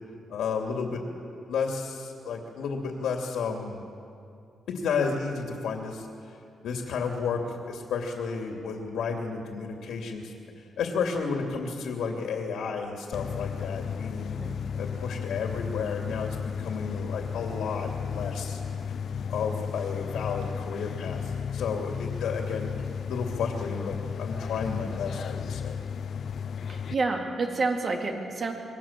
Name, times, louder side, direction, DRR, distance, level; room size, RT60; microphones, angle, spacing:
voice 1, 0.3-1.0 1.5-3.8 4.7-6.1 6.6-14.3 14.8-18.6 19.3-22.7 23.1-25.8, left 5 dB, 90° left, 2 dB, 2.8 m, -32 dB
sound 1, 13.1-26.9, left 7 dB, 55° left, 0.6 m, -34 dB
voice 2, 26.7-28.5, right 3 dB, 40° right, 1 dB, 3.6 m, -29 dB
27.0 x 22.5 x 7.5 m, 2.6 s
cardioid pair, 130°, 0 cm